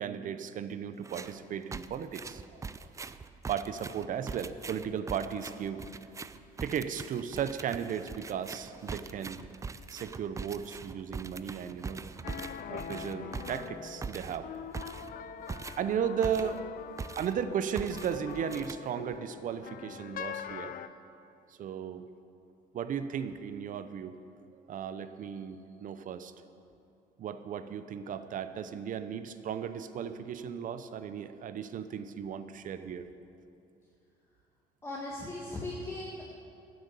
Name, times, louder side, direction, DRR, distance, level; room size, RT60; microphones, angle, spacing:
voice 1, 0.0-2.6 3.5-5.8 6.6-9.4 9.9-12.1 12.7-14.5 15.7-16.9 17.1-20.7 21.6-22.1 22.7-24.2 24.7-26.3 27.2-33.1, right 8 dB, 50° right, 11 dB, 0.7 m, -35 dB
sound 1, 1.0-1.4 1.7-16.7 17.0-17.5 17.8-19.2, right 4 dB, 20° right, 0.4 m, -42 dB
sound 2, 12.2-20.9, left 8 dB, 55° left, 0.6 m, -43 dB
voice 2, 34.8-36.2, left 2 dB, 15° left, -4 dB, 1.8 m, -38 dB
11.5 x 8.0 x 8.3 m, 2.7 s
cardioid pair, 110°, 17 cm